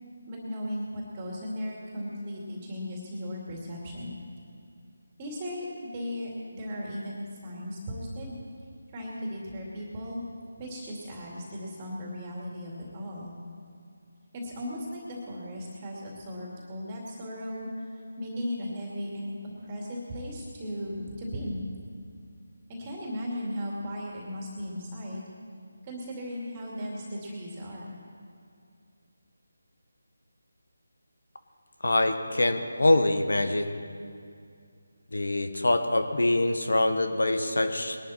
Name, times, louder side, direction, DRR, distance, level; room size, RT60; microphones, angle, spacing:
voice 1, 0.3-4.1 5.2-8.4 8.9-10.2 10.6-13.3 14.3-19.4 19.6-21.6 22.7-25.3 25.8-28.0, equal, 25° right, -3 dB, 2.5 m, -36 dB
voice 2, 31.8-33.8 35.1-38.0, left 2 dB, 80° left, 7 dB, 1.3 m, -24 dB
21.0 x 11.5 x 4.3 m, 2.4 s
figure-of-eight pair, 160°, 0 cm